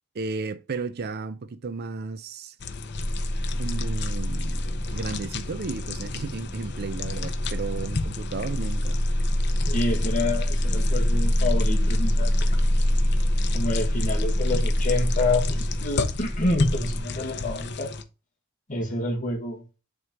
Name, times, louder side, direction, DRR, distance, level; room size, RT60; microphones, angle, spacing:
voice 1, 0.1-2.6 3.6-9.0, right 4 dB, 50° right, 0.5 m, -34 dB
sound 1, 2.6-18.0, left 3 dB, 55° left, 0.7 m, -34 dB
sound 2, 2.9-17.0, equal, 10° right, 1.4 m, -25 dB
voice 2, 9.5-12.6 13.5-17.9 18.7-19.6, left 2 dB, 40° left, 1.5 m, -28 dB
9.4 x 3.6 x 2.9 m
head